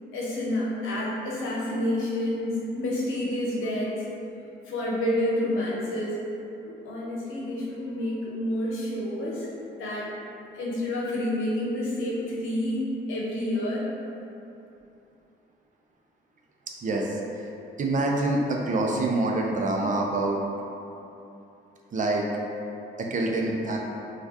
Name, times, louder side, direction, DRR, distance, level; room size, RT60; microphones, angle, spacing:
voice 1, 0.1-3.9 4.7-6.2 6.6-9.5 9.8-10.1 10.5-13.9, left 1 dB, 85° left, -5 dB, 0.8 m, -29 dB
voice 2, 16.8-17.2 17.8-20.4 21.9-22.2 23.0-23.8, right 2 dB, 40° right, -1 dB, 0.5 m, -26 dB
4.4 x 2.4 x 2.8 m, 2.8 s
cardioid pair, 90°, 20 cm